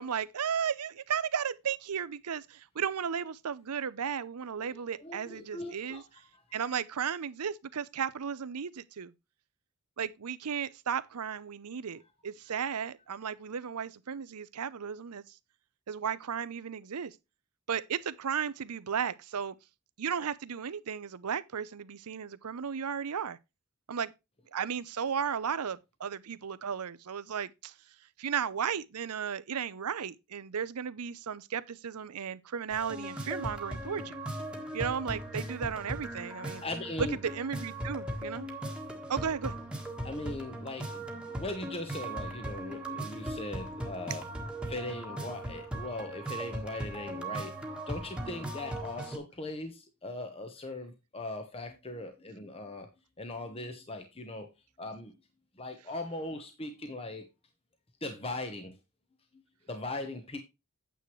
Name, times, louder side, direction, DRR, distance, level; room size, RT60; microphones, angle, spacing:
voice 1, 0.0-6.0 6.5-9.1 10.0-15.2 15.9-17.1 17.7-19.5 20.0-23.4 23.9-24.1 24.5-27.7 28.2-34.2 34.7-36.6 37.0-38.5 39.1-39.6, right 7 dB, 85° right, 0.6 m, -34 dB
voice 2, 4.6-6.0 36.6-37.2 40.0-44.2 44.6-47.5 47.9-52.9 53.2-54.5 54.8-55.1 55.6-57.3 58.0-58.7 59.7-60.4, left 2 dB, 25° left, 1.1 m, -39 dB
sound 1, 32.7-49.2, right 1 dB, 5° right, 1.5 m, -38 dB
9.2 x 7.7 x 3.2 m
head